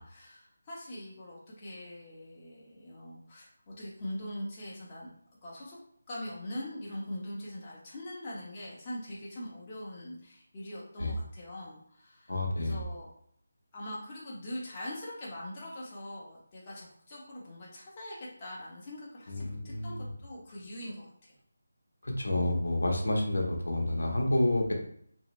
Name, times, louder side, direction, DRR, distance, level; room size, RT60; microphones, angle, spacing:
voice 1, 0.0-5.1 5.4-5.8 6.1-13.1 13.7-21.4, left 1 dB, 20° left, -6 dB, 0.7 m, -42 dB
voice 2, 12.3-12.9 19.3-20.1 22.0-24.7, left 1 dB, 85° left, 1 dB, 0.8 m, -29 dB
2.6 x 2.1 x 3.0 m, 0.66 s
figure-of-eight pair, 170°, 0 cm